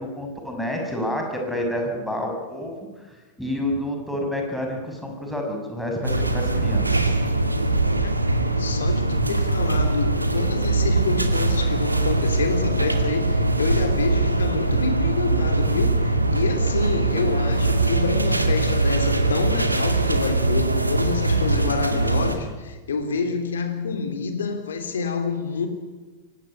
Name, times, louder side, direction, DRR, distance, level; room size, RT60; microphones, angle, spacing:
voice 1, 0.0-3.1 3.4-7.2, left 1 dB, ahead, 6.5 m, -29 dB
sound 1, 6.0-22.4, right 2 dB, 85° right, 2.1 m, -22 dB
voice 2, 8.6-25.7, left 5 dB, 65° left, 3.2 m, -28 dB
23.0 x 18.0 x 9.9 m
figure-of-eight pair, 90°, 0 cm